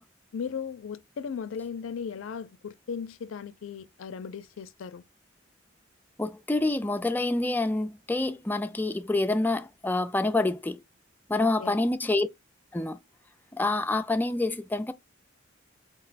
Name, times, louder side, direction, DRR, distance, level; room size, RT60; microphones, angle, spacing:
voice 1, 0.3-5.0 11.4-11.8, left 6 dB, 80° left, 0.4 m, -37 dB
voice 2, 6.2-10.8 11.3-12.3 12.7-13.0 13.5-14.9, left 2 dB, 10° left, 0.3 m, -27 dB
4.6 x 2.2 x 3.9 m
head